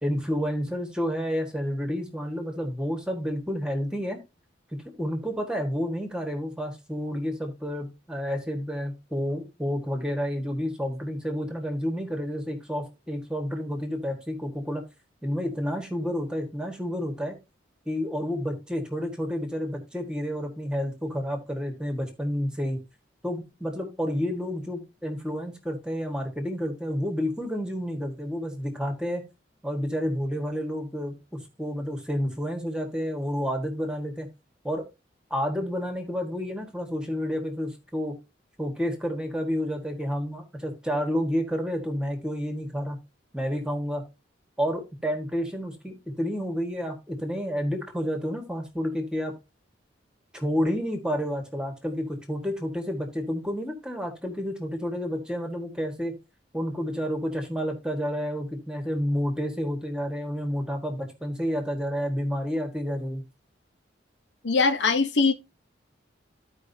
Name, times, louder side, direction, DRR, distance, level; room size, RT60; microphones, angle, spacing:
voice 1, 0.0-4.2 5.0-14.8 15.2-17.4 17.8-22.8 23.2-29.2 29.6-34.3 34.6-34.8 35.3-38.1 38.6-43.0 43.3-44.0 44.6-49.3 50.3-56.2 56.5-63.2, equal, 5° right, 1.5 m, -30 dB
voice 2, 64.4-65.3, left 4 dB, 70° left, 0.8 m, -21 dB
14.5 x 4.9 x 2.7 m
head